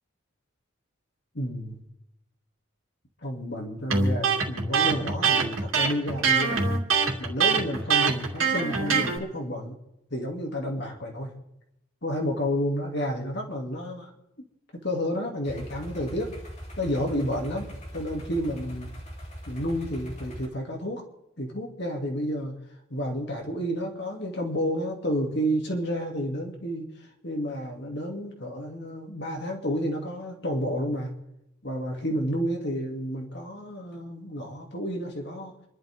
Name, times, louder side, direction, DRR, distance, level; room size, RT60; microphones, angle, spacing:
voice 1, 1.3-1.9 3.2-6.8 7.2-9.8 10.1-11.4 12.0-14.1 14.8-16.3 16.8-18.9 19.5-21.0 21.4-22.6 22.9-26.8 27.2-31.1 31.6-35.5, equal, 50° left, 1 dB, 2.7 m, -30 dB
Electric guitar, 3.9-9.2, right 5 dB, 70° right, 2.8 m, -23 dB
sound 1, 15.4-20.5, equal, 35° left, 3.5 m, -41 dB
28.0 x 12.0 x 3.7 m, 0.86 s
head